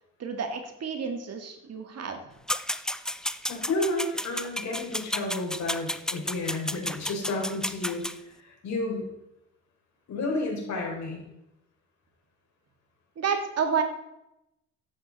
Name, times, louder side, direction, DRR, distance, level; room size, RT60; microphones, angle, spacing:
voice 1, 0.2-2.2 13.2-13.8, right 6 dB, 55° right, 5 dB, 2.3 m, -30 dB
sound 1, 2.5-8.1, left 1 dB, ahead, 0.6 m, -32 dB
voice 2, 3.5-9.1 10.1-11.2, left 2 dB, 65° left, -1 dB, 5.2 m, -31 dB
14.0 x 11.0 x 4.3 m, 0.88 s
cardioid pair, 90°, 30 cm